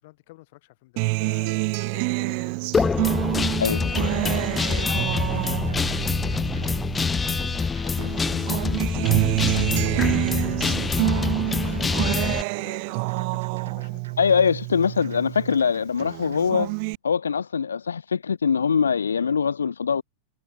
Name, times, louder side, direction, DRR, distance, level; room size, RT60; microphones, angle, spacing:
voice 1, 0.0-3.2 3.9-4.6 5.1-8.9 9.7-12.3 12.6-14.1, left 21 dB, 50° left, 4.4 m, -49 dB
Acoustic guitar, 1.0-7.6 8.0-15.6 16.0-16.9, right 37 dB, 45° right, 0.8 m, -27 dB
Guitar, 2.7-12.4, left 5 dB, 15° left, 0.6 m, -25 dB
sound 1, 3.4-4.9 5.3-6.9 7.3-8.8 9.2-10.7 11.1-12.7 13.1-14.6 15.0-16.5, right 10 dB, 65° right, 5.9 m, -48 dB
voice 2, 14.2-16.7 17.0-20.0, left 6 dB, 70° left, 0.5 m, -22 dB
figure-of-eight pair, 90°, 0 cm